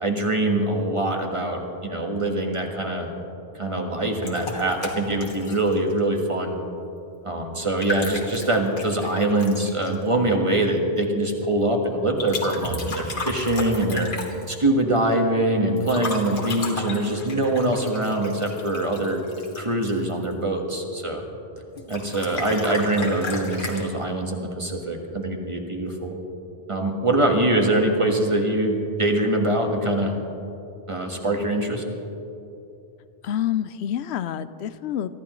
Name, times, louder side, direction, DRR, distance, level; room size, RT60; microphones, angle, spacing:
voice 1, 0.0-3.1 3.5-6.6 7.2-14.1 14.5-19.2 19.5-21.2 21.9-26.1 26.7-30.2 30.9-31.8, right 1 dB, 30° right, 2 dB, 1.5 m, -23 dB
sound 1, 4.2-6.0 7.6-9.9 12.2-14.6 15.8-20.3 21.8-23.8, left 2 dB, 50° left, 2.0 m, -33 dB
voice 2, 33.2-35.1, left 10 dB, 75° left, 14 dB, 0.9 m, -27 dB
23.5 x 14.0 x 3.1 m, 2.8 s
omnidirectional pair, 1.1 m